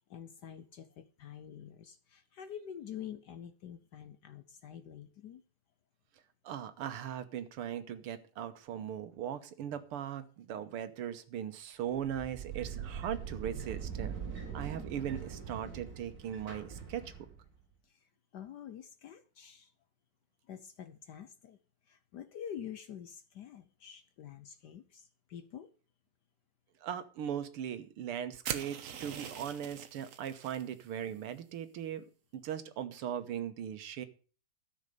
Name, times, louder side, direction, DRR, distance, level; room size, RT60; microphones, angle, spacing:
voice 1, 0.0-5.4 17.8-19.7 20.5-21.6 21.9-25.7, left 9 dB, 65° left, 11 dB, 1.1 m, -47 dB
voice 2, 6.4-14.2 14.5-17.0 26.8-32.0 32.3-34.1, right 9 dB, 80° right, 11 dB, 1.9 m, -39 dB
sound 1, 11.9-17.5, right 7 dB, 40° right, 3.0 m, -42 dB
sound 2, 28.4-30.6, right 8 dB, 60° right, 0.9 m, -41 dB
13.0 x 6.6 x 6.6 m, 0.38 s
omnidirectional pair, 2.4 m